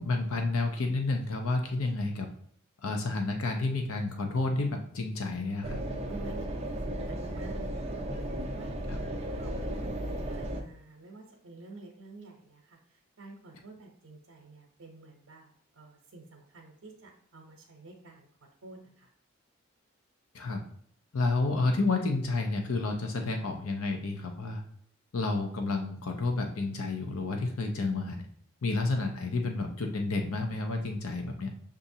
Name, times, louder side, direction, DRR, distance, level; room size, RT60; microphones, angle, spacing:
voice 1, 0.0-2.3 2.8-5.8 8.9-9.0 20.3-20.6 21.1-24.6 25.1-28.2 28.6-31.5, left 3 dB, 90° left, 3 dB, 0.6 m, -30 dB
sound 1, 5.6-10.6, right 1 dB, 30° right, 0.5 m, -35 dB
voice 2, 6.1-8.8 9.2-10.0 10.2-18.3 18.6-19.1, right 2 dB, 75° right, 0 dB, 0.8 m, -49 dB
6.8 x 2.5 x 2.7 m, 0.62 s
head